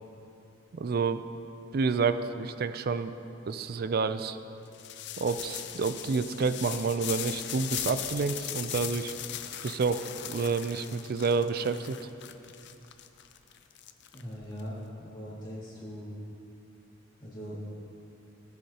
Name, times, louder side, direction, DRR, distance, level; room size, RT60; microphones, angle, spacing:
voice 1, 0.7-1.2 1.7-3.1 3.5-4.4 5.2-9.1 9.6-12.0, right 4 dB, 50° right, 11 dB, 0.4 m, -29 dB
sound 1, 4.7-14.6, left 11 dB, 60° left, 0.5 m, -39 dB
voice 2, 14.1-16.1 17.2-17.6, equal, 25° left, -9 dB, 2.2 m, -40 dB
17.5 x 8.3 x 2.9 m, 2.8 s
head